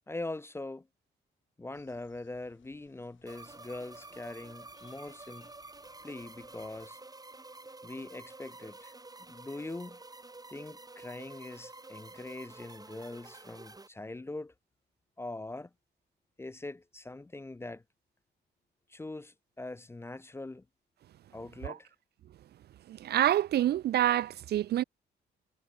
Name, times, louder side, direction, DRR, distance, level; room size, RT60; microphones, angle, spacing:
voice 1, 0.1-0.9 1.6-5.5 6.0-7.0 7.8-8.9 9.3-10.0 10.5-14.5 15.2-15.7 16.4-17.8 18.9-20.7 21.3-21.9, left 2 dB, 10° left, 0.4 m, -42 dB
sound 1, 1.7-6.9, left 11 dB, 70° left, 5.5 m, -66 dB
sound 2, 3.3-13.9, right 3 dB, 20° right, 5.0 m, -50 dB
voice 2, 22.9-24.8, right 12 dB, 55° right, 0.4 m, -27 dB
cardioid pair, 90°, 20 cm